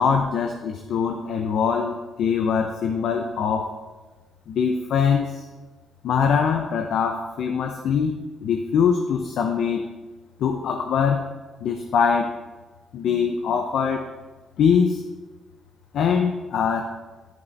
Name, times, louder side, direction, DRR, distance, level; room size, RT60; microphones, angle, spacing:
voice 1, 0.0-3.7 4.5-5.4 6.0-9.9 10.4-11.3 11.6-12.3 12.9-14.1 14.6-15.0 15.9-16.9, left 6 dB, 75° left, 4 dB, 0.6 m, -23 dB
10.5 x 5.4 x 4.1 m, 1.3 s
cardioid pair, 90°, 0 cm